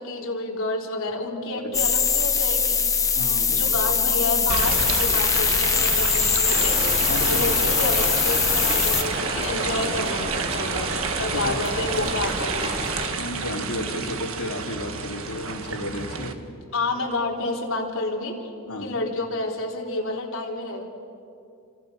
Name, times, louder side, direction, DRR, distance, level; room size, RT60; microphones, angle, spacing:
voice 1, 0.0-2.8 3.5-10.9 11.2-12.8 16.7-18.5 18.8-20.8, left 2 dB, 60° left, -1 dB, 4.1 m, -29 dB
sound 1, 1.7-9.0, left 6 dB, 15° left, 1.0 m, -22 dB
voice 2, 3.1-3.6 6.8-7.4 11.3-11.6 13.1-16.4 18.7-19.0, left 1 dB, 75° left, -1 dB, 3.3 m, -33 dB
sound 2, 4.5-16.3, right 5 dB, 65° right, 1.7 m, -30 dB
sound 3, 6.5-13.1, right 1 dB, 25° right, 2.6 m, -31 dB
29.5 x 26.5 x 6.8 m, 2.5 s
head